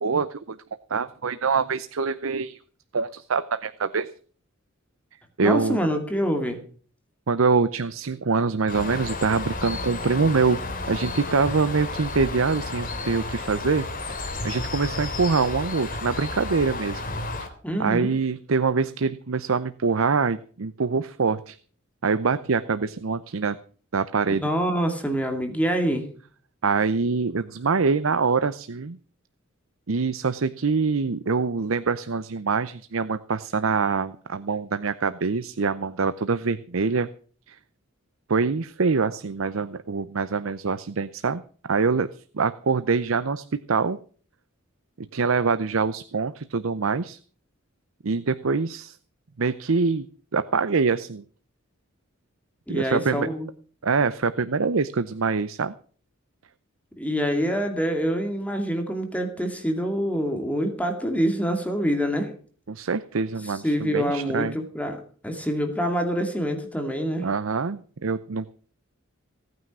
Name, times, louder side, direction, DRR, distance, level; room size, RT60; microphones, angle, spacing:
voice 1, 0.0-0.6 0.9-2.6 2.9-4.1 5.4-5.8 7.3-10.6 10.9-14.2 14.4-17.0 17.4-17.5 17.8-21.6 22.0-23.6 23.9-24.5 26.6-29.0 29.9-37.1 37.5-37.6 38.3-41.4 41.7-44.0 45.0-47.2 48.0-49.0 49.4-50.1 50.3-51.2 52.7-53.3 53.8-55.7 62.7-64.5 67.2-68.5, right 4 dB, 75° right, 14 dB, 0.7 m, -24 dB
voice 2, 5.4-6.6 17.6-18.1 24.3-26.1 52.7-53.5 57.0-62.3 63.4-65.0 65.2-67.3, equal, 5° left, 5 dB, 2.3 m, -26 dB
Bird, 8.7-17.5, left 3 dB, 45° left, 3.3 m, -32 dB
17.5 x 9.4 x 6.1 m, 0.43 s
head